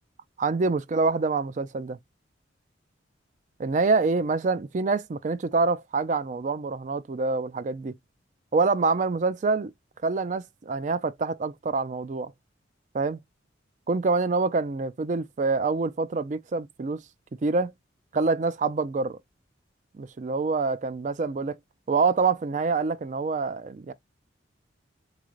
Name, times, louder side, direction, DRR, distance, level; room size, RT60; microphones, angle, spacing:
voice 1, 0.4-2.0 3.6-7.9 8.5-9.7 10.0-12.3 12.9-13.2 13.9-17.0 17.4-17.7 18.1-19.2 20.0-21.6 21.9-23.9, right 4 dB, 40° right, 0.4 m, -26 dB
3.8 x 3.2 x 2.4 m
head